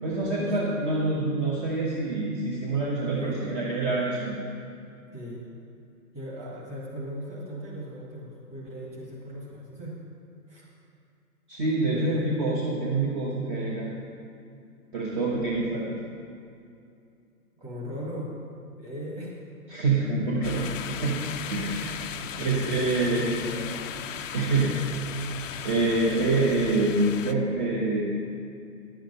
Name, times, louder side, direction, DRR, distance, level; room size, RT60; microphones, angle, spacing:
voice 1, 0.0-4.4 11.5-13.9 14.9-15.9 19.7-21.2 21.5-22.0 22.4-23.6 24.3-24.8 25.6-28.0, right 2 dB, 30° right, -5 dB, 1.3 m, -26 dB
voice 2, 3.1-3.4 5.1-5.4 6.1-10.0 10.5-10.7 11.8-12.3 17.6-18.3 18.8-19.3 22.2-23.8 24.1-24.2, equal, 15° right, -5 dB, 1.7 m, -38 dB
sound 1, 20.4-27.3, left 8 dB, 55° left, 0.5 m, -37 dB
10.5 x 7.7 x 5.5 m, 2.5 s
hypercardioid pair, 150°, 47 cm